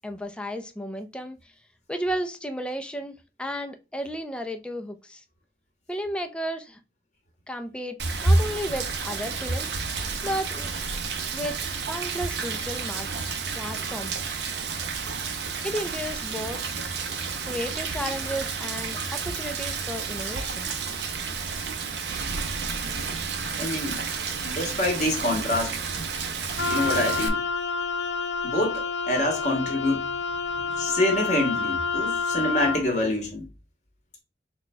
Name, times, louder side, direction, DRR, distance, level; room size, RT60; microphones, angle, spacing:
voice 1, 0.0-1.4 1.9-5.2 5.9-6.8 7.5-8.0 8.2-9.7 10.2-10.7 11.3-13.1 13.6-14.3 15.6-16.6 17.5-20.7, equal, 5° left, 0.4 m, -33 dB
Rain, 8.0-27.3, right 5 dB, 75° right, 0.7 m, -31 dB
voice 2, 23.6-24.0 24.4-25.7 26.7-27.4 28.4-30.1 30.5-33.4, left 1 dB, 40° left, 1.4 m, -26 dB
Wind instrument woodwind instrument, 26.6-32.8, left 4 dB, 80° left, 0.6 m, -28 dB
4.2 x 2.3 x 4.2 m
head